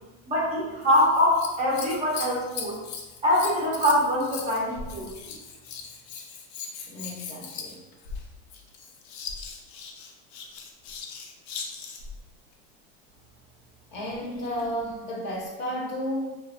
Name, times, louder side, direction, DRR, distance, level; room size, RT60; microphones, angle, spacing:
voice 1, 0.3-2.8 3.2-5.1, left 1 dB, 20° right, -5 dB, 0.4 m, -23 dB
Scissors, 0.8-12.2 14.1-14.7 15.5-15.6, left 5 dB, 80° left, 0.5 m, -39 dB
voice 2, 6.9-7.8 13.9-16.3, equal, 35° left, -2 dB, 0.5 m, -32 dB
2.8 x 2.1 x 2.4 m, 1.1 s
supercardioid pair, 155°, 31 cm